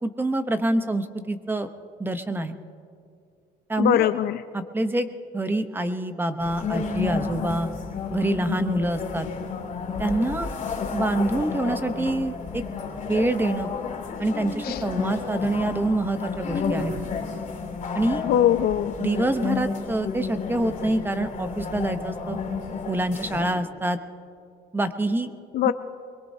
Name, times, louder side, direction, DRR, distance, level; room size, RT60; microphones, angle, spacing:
voice 1, 0.0-1.7 2.0-2.6 3.7-4.1 4.5-5.1 5.3-7.7 8.1-9.3 10.0-10.5 10.9-12.6 13.1-13.7 14.2-16.9 17.9-18.2 19.0-22.4 22.9-24.0 24.7-25.3 25.6-25.7, right 1 dB, 10° right, 9 dB, 0.9 m, -26 dB
voice 2, 3.8-4.4 14.6-14.8 18.2-19.0 25.5-25.7, left 11 dB, 65° left, 12 dB, 0.5 m, -21 dB
sound 1, 6.4-23.5, left 5 dB, 50° left, 3.2 m, -31 dB
23.0 x 22.0 x 2.8 m, 2.4 s
cardioid pair, 110°, 17 cm